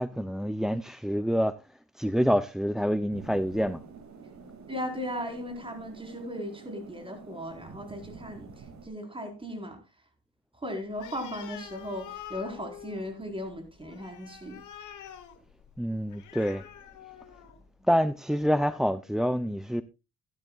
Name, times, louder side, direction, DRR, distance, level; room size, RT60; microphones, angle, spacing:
voice 1, 0.0-1.5 2.0-3.8 15.8-16.6 17.9-19.8, equal, ahead, 0.6 m, -27 dB
sound 1, 3.1-8.9, right 5 dB, 65° right, 2.4 m, -48 dB
voice 2, 4.7-8.5 8.8-9.8 10.6-14.6 17.8-17.9, equal, 15° right, 4.4 m, -37 dB
Animal, 10.9-17.7, left 10 dB, 80° left, 2.4 m, -46 dB
16.0 x 12.0 x 2.4 m
cardioid pair, 90°, 30 cm